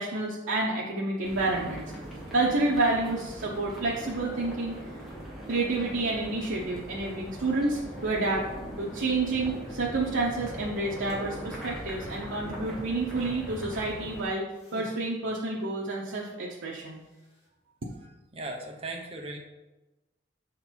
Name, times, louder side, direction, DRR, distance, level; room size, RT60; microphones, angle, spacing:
voice 1, 0.0-1.9 2.3-4.8 5.5-8.4 8.8-14.4 14.7-17.0, right 2 dB, 80° right, -4 dB, 0.8 m, -29 dB
sound 1, 1.2-14.2, equal, ahead, 1.3 m, -40 dB
sound 2, 10.7-11.3 12.2-13.1 14.5-15.0 17.0-17.4, equal, 35° left, 2.0 m, -49 dB
voice 2, 18.3-19.4, right 2 dB, 30° right, 1 dB, 0.8 m, -37 dB
6.7 x 3.9 x 4.4 m, 1.1 s
head